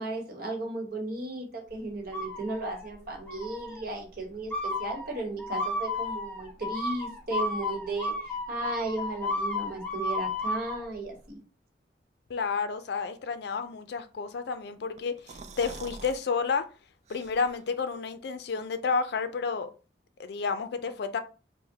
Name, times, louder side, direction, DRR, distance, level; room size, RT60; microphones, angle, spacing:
voice 1, 0.0-11.4, right 2 dB, 55° right, 1.1 m, -35 dB
sound 1, 2.1-2.9 3.3-3.8 4.5-10.8, left 2 dB, 10° left, 0.9 m, -33 dB
voice 2, 12.3-16.7 17.1-19.7 20.2-21.2, left 5 dB, 65° left, 0.4 m, -31 dB
sound 2, 15.0-16.2 16.6-16.7 17.1-17.7, right 4 dB, 40° right, 0.3 m, -45 dB
4.9 x 2.1 x 2.7 m
head